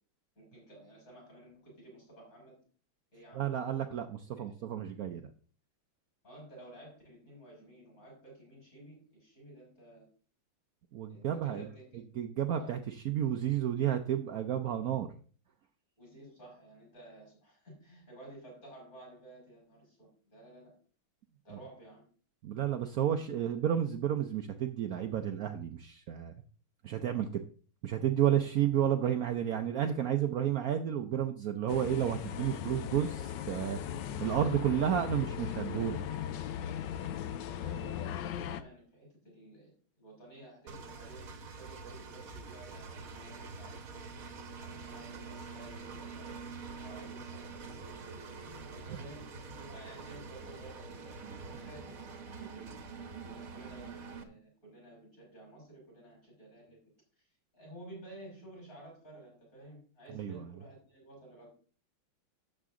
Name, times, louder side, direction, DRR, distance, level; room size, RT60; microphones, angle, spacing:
voice 1, 0.4-2.6 3.1-3.5 4.2-4.3 6.2-10.1 11.1-12.0 12.5-12.8 16.0-20.7 21.4-22.0 37.5-44.0 44.6-46.4 46.8-51.1 51.5-52.7 53.2-56.8 57.2-57.3 57.5-61.5, right 1 dB, 40° left, -2 dB, 6.2 m, -53 dB
voice 2, 3.3-5.3 10.9-11.7 12.1-15.1 21.5-21.6 22.4-26.3 26.8-27.4 27.8-33.8 34.2-36.0 48.9-49.0 60.1-60.5, right 10 dB, 70° right, 6 dB, 0.8 m, -31 dB
sound 1, 31.7-38.6, left 9 dB, 70° left, 1.2 m, -38 dB
Engine, 40.7-54.2, right 4 dB, 50° right, 1.3 m, -46 dB
12.0 x 7.6 x 3.7 m, 0.42 s
omnidirectional pair, 2.3 m